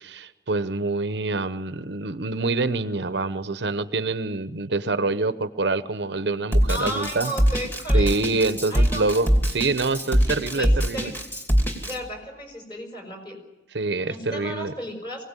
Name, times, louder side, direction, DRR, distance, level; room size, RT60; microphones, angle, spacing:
voice 1, 0.0-7.3 7.9-11.1 13.7-14.7, right 3 dB, 75° right, 12 dB, 0.9 m, -26 dB
Drum kit, 6.5-11.9, equal, 10° left, 2.8 m, -22 dB
voice 2, 6.7-8.2 8.7-9.1 10.5-11.2 11.8-13.4 14.1-15.2, equal, 25° left, 4 dB, 5.4 m, -34 dB
23.5 x 17.5 x 9.0 m, 1.0 s
head